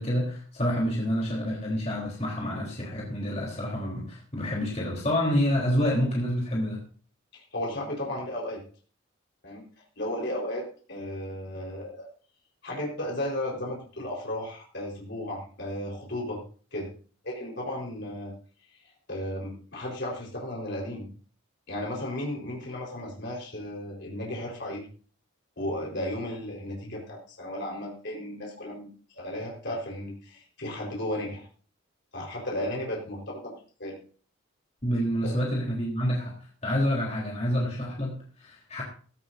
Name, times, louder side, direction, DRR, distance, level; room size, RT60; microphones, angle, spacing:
voice 1, 0.0-6.8 34.8-36.4 36.6-38.8, equal, 30° left, -3 dB, 3.7 m, -28 dB
voice 2, 7.3-8.6 9.4-9.6 10.0-12.1 12.6-16.4 16.7-16.9 17.2-18.3 18.8-21.1 21.7-24.8 25.6-31.5 32.1-33.5 33.8-34.0 35.2-35.4, left 1 dB, 55° left, -2 dB, 4.4 m, -34 dB
16.5 x 15.5 x 2.7 m, 0.41 s
head